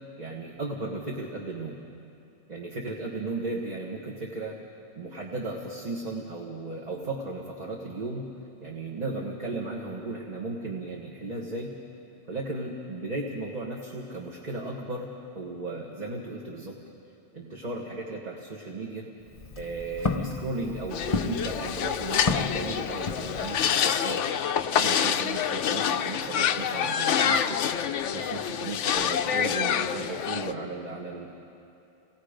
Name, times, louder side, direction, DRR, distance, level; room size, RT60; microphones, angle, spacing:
voice 1, 0.2-1.8 2.5-4.6 4.9-8.2 8.6-11.7 12.3-15.1 15.3-16.8 17.3-19.1 19.5-24.2 24.7-27.6 28.1-31.3, right 2 dB, 35° right, -2 dB, 1.5 m, -35 dB
Walk footsteps, 19.2-23.7, left 3 dB, 35° left, 0.8 m, -33 dB
sound 1, 20.9-30.5, left 8 dB, 75° left, 1.0 m, -27 dB
28.0 x 19.0 x 5.1 m, 2.7 s
omnidirectional pair, 1.3 m